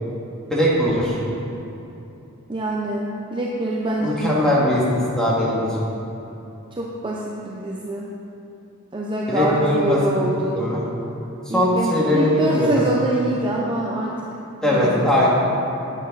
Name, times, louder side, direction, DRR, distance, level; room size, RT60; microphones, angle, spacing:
voice 1, 0.5-1.2 4.0-4.8 5.2-5.7 9.3-10.0 10.5-10.8 11.5-12.8 14.6-15.3, left 1 dB, 5° left, -7 dB, 2.1 m, -20 dB
voice 2, 2.5-4.4 6.8-8.1 8.9-10.6 11.5-14.3 14.7-15.3, right 1 dB, 20° right, -4 dB, 0.7 m, -25 dB
11.0 x 8.9 x 4.1 m, 2.8 s
head